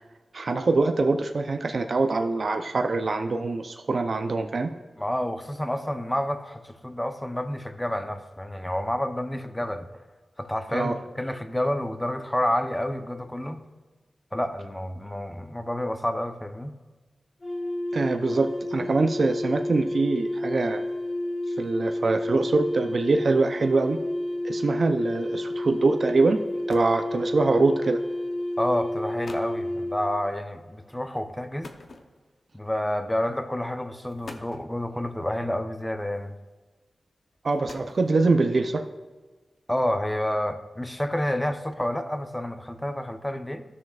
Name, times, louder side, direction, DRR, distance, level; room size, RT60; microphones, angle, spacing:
voice 1, 0.3-4.7 10.7-11.0 17.9-20.8 21.6-24.0 24.4-26.4 26.7-28.0 37.4-38.8, right 3 dB, 65° right, 5 dB, 0.5 m, -24 dB
voice 2, 5.0-9.9 10.4-13.6 14.3-16.7 28.6-31.7 32.5-36.3 39.7-43.6, left 1 dB, 10° left, 7 dB, 0.7 m, -29 dB
sound 1, 17.4-30.1, left 1 dB, 35° left, 2.1 m, -30 dB
sound 2, 26.4-27.1 28.1-28.3 28.9-29.0 29.2-29.6 31.6-32.5 33.4-33.6 34.1-34.7 36.0-36.5 37.3-38.4, left 3 dB, 70° left, 0.7 m, -45 dB
14.0 x 6.4 x 2.4 m, 1.3 s
cardioid pair, 55°, 0 cm